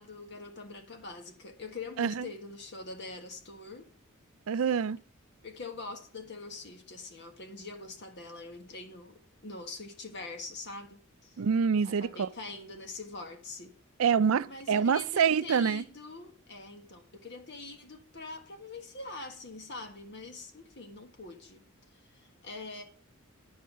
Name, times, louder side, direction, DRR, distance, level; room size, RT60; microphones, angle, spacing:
voice 1, 0.0-3.9 5.4-11.4 11.8-13.8 14.4-21.6 22.1-22.8, left 3 dB, 55° left, 1.6 m, -44 dB
voice 2, 4.5-5.0 11.4-12.3 14.0-15.8, right 6 dB, 80° right, 0.4 m, -26 dB
11.0 x 4.7 x 6.3 m
head